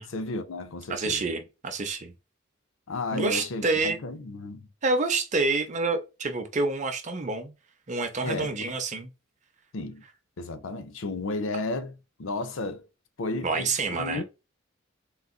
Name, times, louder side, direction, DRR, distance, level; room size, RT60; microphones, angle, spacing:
voice 1, 0.0-1.3 2.9-4.7 8.2-8.5 9.7-10.0 10.4-12.8 13.2-14.2, left 2 dB, 70° left, 0.6 m, -33 dB
voice 2, 0.9-2.1 3.1-4.0 4.8-7.5 7.9-9.1 13.4-14.2, right 3 dB, 35° right, 0.6 m, -28 dB
3.9 x 2.4 x 2.3 m
head